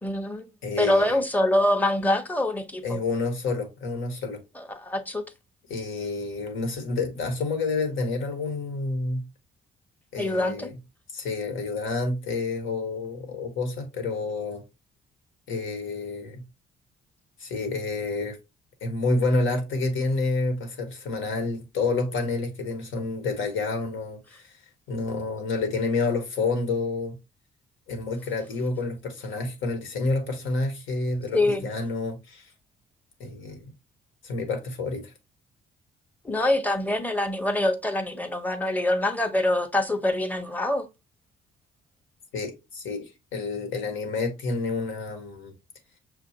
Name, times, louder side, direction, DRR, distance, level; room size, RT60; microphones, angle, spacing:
voice 1, 0.0-0.5 0.8-3.0 4.6-5.2 10.2-10.7 31.3-31.6 36.2-40.9, left 1 dB, 10° left, 0.7 m, -25 dB
voice 2, 0.6-1.2 2.8-4.4 5.7-9.2 10.1-10.7 11.1-14.6 15.5-16.4 17.4-18.4 18.8-24.6 24.9-27.2 27.9-32.5 33.2-33.7 34.2-35.1 42.3-45.5, left 3 dB, 80° left, 1.3 m, -29 dB
6.1 x 2.5 x 2.8 m
cardioid pair, 90°, 20 cm